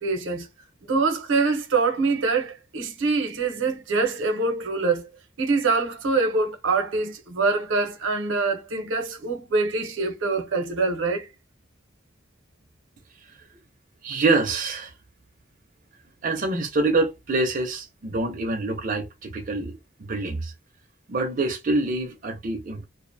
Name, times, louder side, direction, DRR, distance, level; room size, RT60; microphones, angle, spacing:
voice 1, 0.0-0.5 0.9-5.1 5.4-11.3, right 3 dB, 80° right, 0.6 m, -24 dB
voice 2, 14.0-14.9 16.2-20.5 21.1-22.8, right 2 dB, 45° right, 0.5 m, -26 dB
2.4 x 2.0 x 2.6 m
head